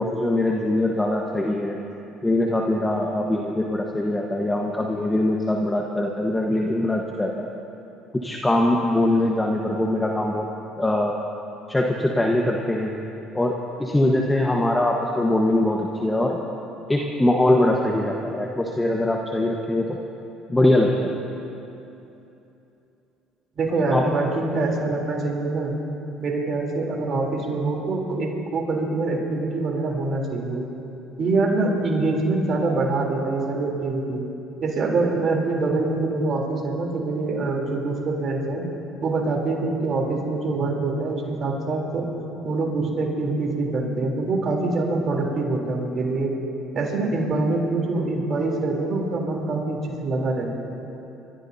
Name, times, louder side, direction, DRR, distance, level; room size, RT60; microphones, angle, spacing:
voice 1, 0.0-1.8 2.2-7.5 8.2-10.5 10.8-11.1 11.7-12.9 13.3-16.4 16.9-20.0 20.5-20.9 23.9-24.1, left 1 dB, 10° left, 0 dB, 1.3 m, -22 dB
voice 2, 23.6-25.7 26.2-30.6 31.2-34.2 34.6-38.6 39.0-42.1 42.4-46.3 46.7-50.5, right 3 dB, 45° right, -1 dB, 3.6 m, -24 dB
28.5 x 14.5 x 2.8 m, 2.9 s
supercardioid pair, 75°, 0 cm